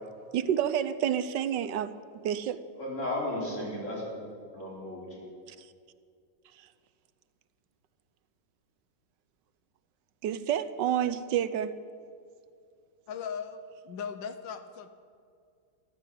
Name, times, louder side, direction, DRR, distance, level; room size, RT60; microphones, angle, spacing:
voice 1, 0.3-2.6 5.5-5.7 6.4-6.7 10.2-11.8, right 10 dB, 80° right, 1.3 m, -29 dB
voice 2, 2.8-4.3 4.5-5.2, left 1 dB, 40° left, 4.7 m, -34 dB
voice 3, 13.1-14.9, left 6 dB, 90° left, 1.6 m, -38 dB
14.0 x 13.0 x 7.7 m
omnidirectional pair, 2.0 m